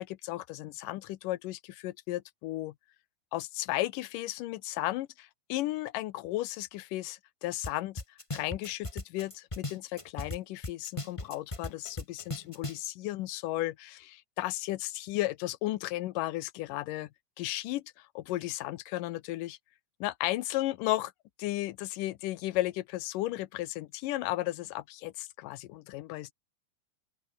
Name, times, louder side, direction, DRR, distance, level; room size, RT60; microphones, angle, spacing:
voice 1, 0.0-2.7 3.3-8.0 8.3-17.1 17.4-19.6 20.0-21.1 21.4-26.3, left 16 dB, 90° left, 2.5 m, -34 dB
sound 1, 7.6-7.7 8.0-10.4 10.6-12.9, left 2 dB, 10° left, 1.6 m, -36 dB
open air
omnidirectional pair, 3.7 m